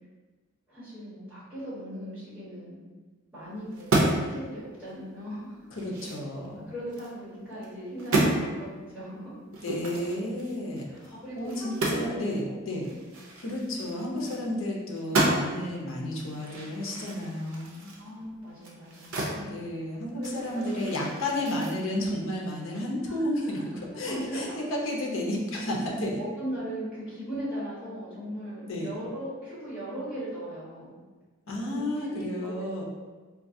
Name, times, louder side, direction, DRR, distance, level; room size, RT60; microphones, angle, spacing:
voice 1, 0.7-2.8 3.3-5.6 6.7-9.3 10.9-12.9 18.0-19.2 20.2-20.3 20.5-20.9 23.4-23.6 24.0-24.5 26.2-30.9 31.7-32.6, right 1 dB, 10° right, -12 dB, 1.4 m, -38 dB
sound 1, 3.7-4.3 4.8-4.9 5.4-7.1 7.5-7.7 8.0-8.4 9.5-12.2 12.4-12.5 12.8-14.6 14.9-15.7 16.1-19.4 19.7-21.7, right 2 dB, 75° right, 0.6 m, -31 dB
voice 2, 5.8-6.7 9.6-12.9 13.4-17.9 19.3-26.2 28.7-28.9 31.5-32.8, left 1 dB, 65° left, -2 dB, 0.7 m, -32 dB
3.7 x 2.3 x 2.6 m, 1.3 s
head